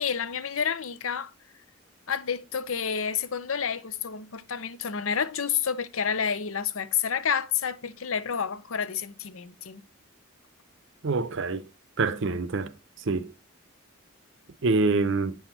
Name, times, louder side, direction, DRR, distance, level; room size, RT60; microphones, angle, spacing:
voice 1, 0.0-1.3 2.1-9.8, left 7 dB, 70° left, 0.7 m, -29 dB
voice 2, 11.0-11.6 12.0-12.7 13.1-13.3 14.6-15.4, right 3 dB, 60° right, 0.6 m, -25 dB
9.0 x 5.8 x 4.4 m
head